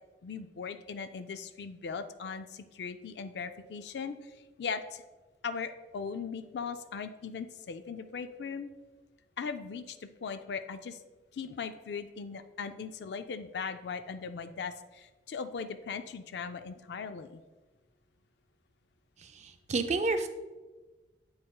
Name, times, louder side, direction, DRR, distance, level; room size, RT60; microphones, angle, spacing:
voice 1, 0.2-4.3 4.6-5.0 5.4-8.7 9.4-11.0 11.3-17.4, left 5 dB, 65° left, 10 dB, 0.4 m, -39 dB
voice 2, 19.2-20.3, right 3 dB, 40° right, 7 dB, 0.4 m, -30 dB
7.9 x 5.5 x 2.3 m, 1.2 s
head